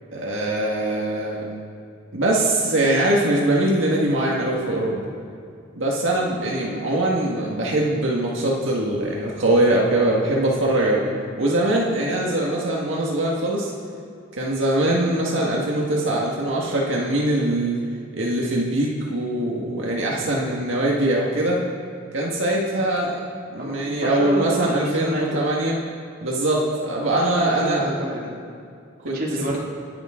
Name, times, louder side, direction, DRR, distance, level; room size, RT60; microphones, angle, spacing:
voice 1, 0.1-1.4 2.1-5.0 5.7-11.1 11.4-13.7 14.3-17.8 18.1-21.6 22.1-23.2 23.5-25.8 26.2-27.9 29.0-29.2, right 1 dB, 70° right, -3 dB, 1.8 m, -22 dB
voice 2, 23.6-25.4 27.0-28.3 29.1-29.6, right 1 dB, 45° right, -3 dB, 2.7 m, -29 dB
26.0 x 11.0 x 3.8 m, 2.4 s
head